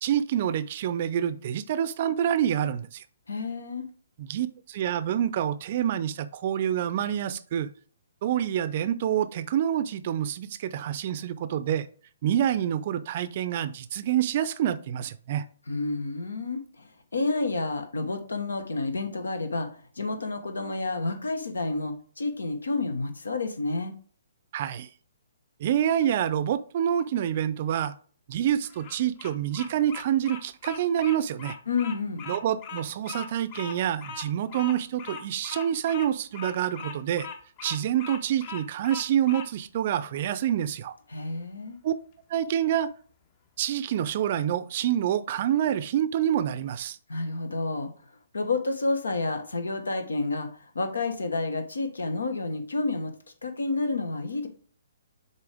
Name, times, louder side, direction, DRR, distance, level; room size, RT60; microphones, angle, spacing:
voice 1, 0.0-3.0 4.2-7.7 8.2-11.9 12.2-15.4 24.5-24.9 25.6-28.0 28.3-31.6 32.3-37.3 37.6-40.9 41.8-41.9 42.3-42.9 43.6-47.0, right 10 dB, 45° right, 0.5 m, -27 dB
voice 2, 3.3-3.9 15.7-23.9 31.7-32.3 41.1-41.8 47.1-47.9 48.3-53.1 53.4-54.5, left 3 dB, 80° left, 1.3 m, -30 dB
Bird vocalization bird call bird song, 28.6-39.5, left 6 dB, 35° left, 0.9 m, -40 dB
6.9 x 4.3 x 3.4 m
figure-of-eight pair, 130°, 0 cm